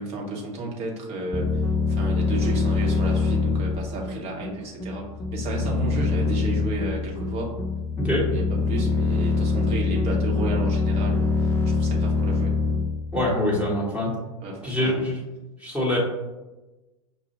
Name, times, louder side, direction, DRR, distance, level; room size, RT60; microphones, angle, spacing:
voice 1, 0.0-1.5 1.9-7.5 8.2-12.5 14.4-15.0, right 2 dB, 35° right, -1 dB, 1.0 m, -32 dB
sound 1, 1.3-13.8, left 4 dB, 15° left, 0.4 m, -24 dB
voice 2, 8.0-8.3 13.1-14.1 14.6-15.2 15.6-16.0, left 1 dB, 5° right, -5 dB, 1.2 m, -24 dB
5.5 x 2.3 x 2.9 m, 1.1 s
figure-of-eight pair, 85°, 19 cm